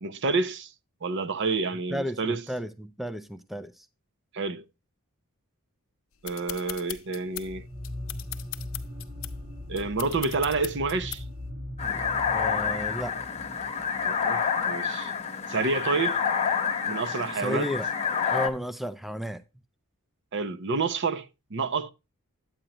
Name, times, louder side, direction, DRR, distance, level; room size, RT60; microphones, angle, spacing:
voice 1, 0.0-0.7 1.0-2.4 4.3-4.6 6.2-7.7 9.7-11.2 14.0-15.1 15.5-16.2 16.9-17.7 20.3-21.9, right 4 dB, 55° right, 0.6 m, -29 dB
voice 2, 1.9-3.9 12.3-13.1 17.4-17.9 18.3-19.4, left 1 dB, ahead, 0.4 m, -33 dB
sound 1, 6.2-11.5, left 15 dB, 65° left, 0.7 m, -40 dB
sound 2, 7.4-14.7, left 1 dB, 35° right, 1.4 m, -40 dB
sound 3, 11.8-18.5, left 6 dB, 30° left, 1.0 m, -28 dB
8.9 x 8.8 x 2.9 m
head